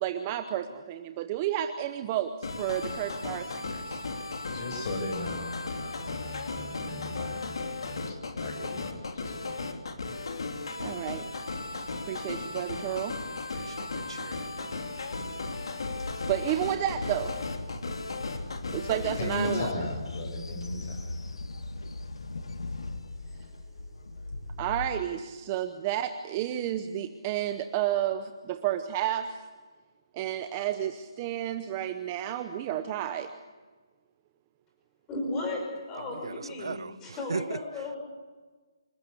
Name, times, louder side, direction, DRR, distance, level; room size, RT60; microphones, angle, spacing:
voice 1, 0.0-4.0 10.8-11.2 12.1-13.2 16.3-17.4 18.7-19.9 24.6-29.5 30.1-33.3, right 11 dB, 20° right, 0.8 m, -31 dB
sound 1, 2.4-19.7, left 3 dB, 65° left, 2.9 m, -36 dB
voice 2, 4.5-9.5 19.2-21.1, left 2 dB, 35° left, 7.3 m, -37 dB
voice 3, 13.5-14.8 36.1-37.0 37.3-37.6, right 5 dB, 65° right, 0.7 m, -38 dB
Train, 14.9-24.9, left 2 dB, 90° left, 2.3 m, -39 dB
voice 4, 35.1-35.6 35.9-38.0, left 2 dB, 10° left, 5.6 m, -35 dB
27.0 x 20.0 x 7.0 m
hypercardioid pair, 175°, 3 cm